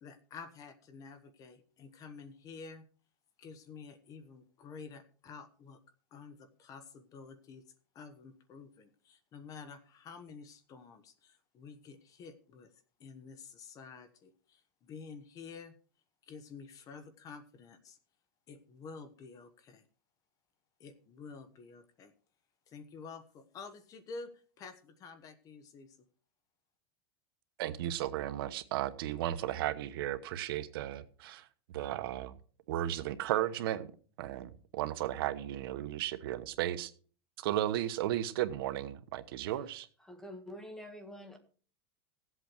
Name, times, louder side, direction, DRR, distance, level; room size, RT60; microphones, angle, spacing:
voice 1, 0.0-2.8 3.4-5.8 6.1-7.6 7.9-12.7 13.0-15.7 16.3-18.0 18.5-19.9 20.8-22.1 22.7-24.3 24.6-26.0, left 5 dB, 30° left, 11 dB, 1.1 m, -50 dB
voice 2, 27.6-31.5 31.7-32.3 32.7-33.9 34.2-36.9 37.4-39.9, right 13 dB, 75° right, 11 dB, 1.1 m, -34 dB
voice 3, 40.0-41.4, equal, 5° left, 6 dB, 1.6 m, -47 dB
15.5 x 8.0 x 4.6 m, 0.41 s
supercardioid pair, 160°, 12 cm